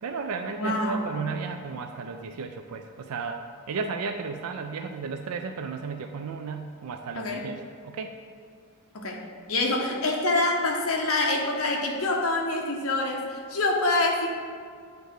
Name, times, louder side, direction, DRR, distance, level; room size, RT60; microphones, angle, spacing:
voice 1, 0.0-8.2, right 5 dB, 85° right, 6 dB, 0.4 m, -34 dB
voice 2, 0.6-1.1 7.1-7.4 8.9-9.2 9.5-14.3, left 2 dB, 70° left, 0 dB, 1.0 m, -26 dB
8.0 x 3.3 x 6.4 m, 2.2 s
head